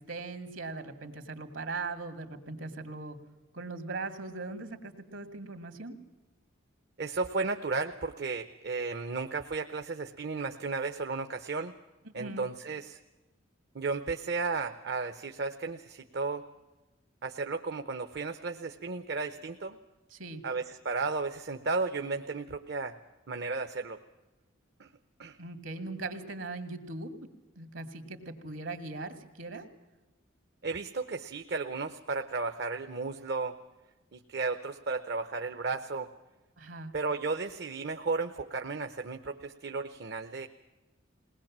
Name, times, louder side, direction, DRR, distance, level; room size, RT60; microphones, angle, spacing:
voice 1, 0.0-3.2 3.5-5.9 12.0-12.5 20.1-20.4 25.4-27.1 27.6-29.7 36.6-36.9, right 3 dB, 75° right, 7 dB, 2.4 m, -40 dB
voice 2, 7.0-11.7 12.1-13.0 13.7-16.4 17.2-19.8 20.4-22.9 23.3-24.0 24.8-24.9 25.2-25.4 30.6-33.6 34.1-36.1 36.9-40.5, right 4 dB, 55° right, 7 dB, 0.8 m, -34 dB
21.0 x 19.5 x 7.4 m, 1.1 s
head